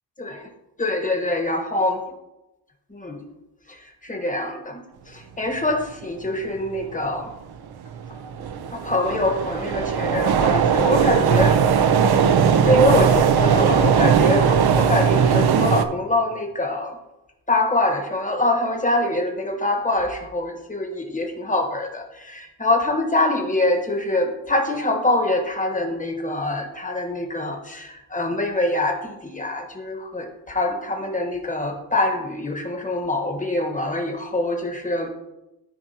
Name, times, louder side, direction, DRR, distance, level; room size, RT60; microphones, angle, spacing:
voice 1, 0.8-2.0 2.9-3.2 3.7-7.3 8.7-11.6 12.2-17.0 17.5-35.1, left 2 dB, 20° left, 3 dB, 1.3 m, -24 dB
sound 1, 7.2-7.3 7.9-15.8, right 7 dB, 65° right, 0.7 m, -19 dB
13.5 x 4.5 x 2.9 m, 0.93 s
cardioid pair, 105°, 40 cm